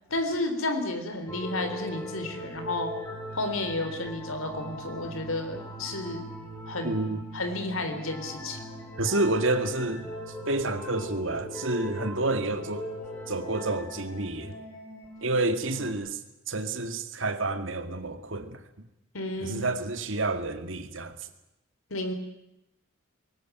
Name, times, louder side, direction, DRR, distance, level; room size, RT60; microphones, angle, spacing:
voice 1, 0.1-2.9 3.3-6.3 6.7-7.0 7.3-8.6 19.1-19.7 21.9-22.1, left 2 dB, 85° left, 3.6 m, -32 dB
sound 1, 1.3-15.9, equal, 10° left, 5.8 m, -40 dB
voice 2, 6.8-7.2 9.0-10.1 10.5-12.9 13.3-14.5 15.2-16.2 16.5-18.6 19.4-21.2, right 2 dB, 70° right, 2.1 m, -29 dB
21.5 x 18.5 x 9.3 m
head